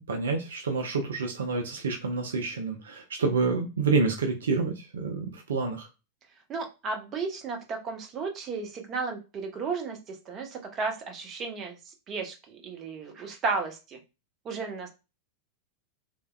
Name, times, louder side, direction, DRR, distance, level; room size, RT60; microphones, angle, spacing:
voice 1, 0.1-5.9, right 4 dB, 65° right, 4 dB, 0.4 m, -28 dB
voice 2, 6.5-14.0 14.4-14.9, right 4 dB, 30° right, 3 dB, 0.7 m, -34 dB
3.2 x 2.0 x 2.2 m, 0.28 s
figure-of-eight pair, 90°, 0 cm